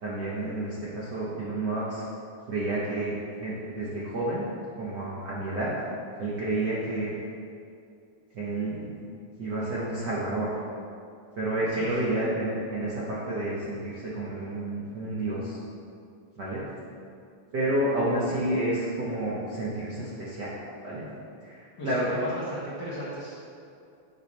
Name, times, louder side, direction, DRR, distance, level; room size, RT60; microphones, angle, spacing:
voice 1, 0.0-2.0 2.5-4.4 4.7-5.7 6.2-7.1 8.3-8.9 9.4-10.6 11.4-15.6 16.4-16.6 17.5-21.1 21.4-22.5, right 1 dB, 75° right, -7 dB, 0.9 m, -30 dB
voice 2, 21.8-23.4, equal, 45° left, -7 dB, 1.6 m, -36 dB
10.5 x 5.7 x 3.3 m, 2.5 s
omnidirectional pair, 3.7 m